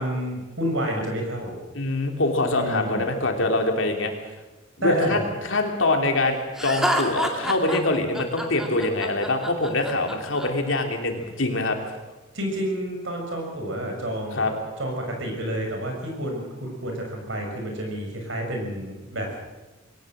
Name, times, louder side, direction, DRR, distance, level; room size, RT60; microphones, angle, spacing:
voice 1, 0.0-1.6 2.5-3.1 4.8-5.3 12.3-14.5 14.8-19.4, equal, 65° right, 2 dB, 6.5 m, -29 dB
voice 2, 1.7-4.1 4.8-11.8 14.3-14.5, left 2 dB, 65° left, 3 dB, 3.3 m, -24 dB
Laughter, 6.6-10.5, equal, 5° right, 2.4 m, -28 dB
22.0 x 18.0 x 7.6 m, 1.1 s
head